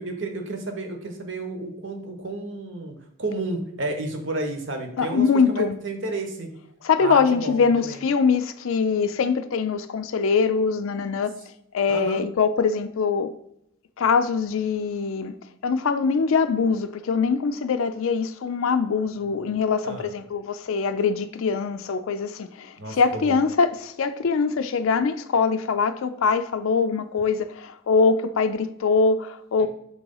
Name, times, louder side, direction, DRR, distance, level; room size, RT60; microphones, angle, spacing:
voice 1, 0.0-6.5 7.0-8.0 11.9-12.2 19.8-20.1 22.8-23.4 29.6-29.7, right 2 dB, 60° right, 1.1 m, -32 dB
voice 2, 5.0-5.8 6.8-11.3 11.7-13.3 14.0-15.3 15.6-29.7, left 5 dB, 75° left, 0.4 m, -23 dB
6.7 x 3.0 x 5.3 m
head